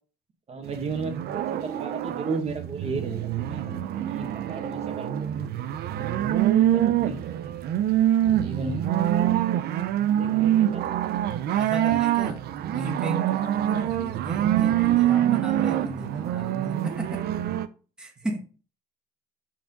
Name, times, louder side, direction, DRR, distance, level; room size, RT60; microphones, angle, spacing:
voice 1, 0.5-5.5 6.0-7.2 8.2-8.8 9.2-9.4 10.2-10.9, right 3 dB, 40° right, 1.6 m, -35 dB
sound 1, 0.7-17.7, right 12 dB, 70° right, 0.7 m, -25 dB
voice 2, 11.5-17.3 18.0-18.4, right 1 dB, 5° right, 1.3 m, -36 dB
5.9 x 5.0 x 5.2 m
cardioid pair, 110°, 17 cm